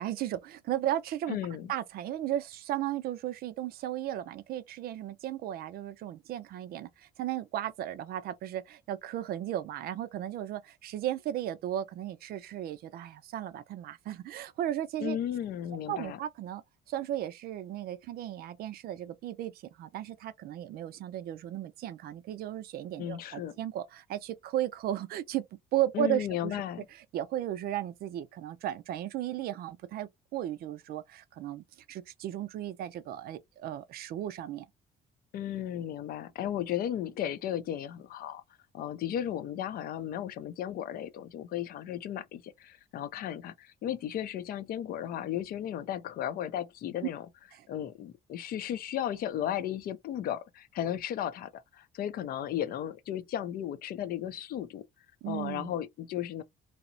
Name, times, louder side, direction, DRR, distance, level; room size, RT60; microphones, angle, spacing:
voice 1, 0.0-1.4 1.7-15.2 15.9-16.6 16.9-25.4 25.7-26.6 27.1-34.7 47.6-47.7 55.2-55.7, right 12 dB, 65° right, 0.4 m, -35 dB
voice 2, 1.3-1.7 15.0-16.2 23.0-23.5 25.9-26.9 35.3-38.4 38.7-47.3 47.7-54.8 55.3-56.4, left 10 dB, 60° left, 0.5 m, -35 dB
2.8 x 2.0 x 2.5 m
cardioid pair, 110°, 17 cm